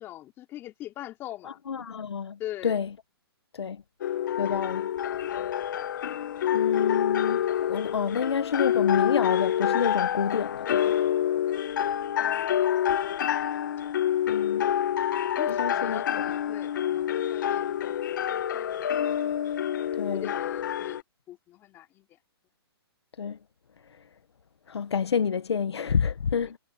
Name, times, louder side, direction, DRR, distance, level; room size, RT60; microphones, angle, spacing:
voice 1, 0.0-1.6 2.4-2.8 12.2-12.5 15.4-19.1 20.1-21.0 21.3-22.1, left 14 dB, 15° left, 4.8 m, -42 dB
voice 2, 1.7-2.4 2.6-2.9 3.5-3.8 4.4-4.9 6.5-11.0 14.3-14.7 15.5-16.0 20.0-20.3 23.2-23.4 24.7-26.6, left 6 dB, 85° left, 1.1 m, -28 dB
sound 1, 4.0-21.0, left 10 dB, 50° left, 1.8 m, -27 dB
hypercardioid pair, 165°, 14 cm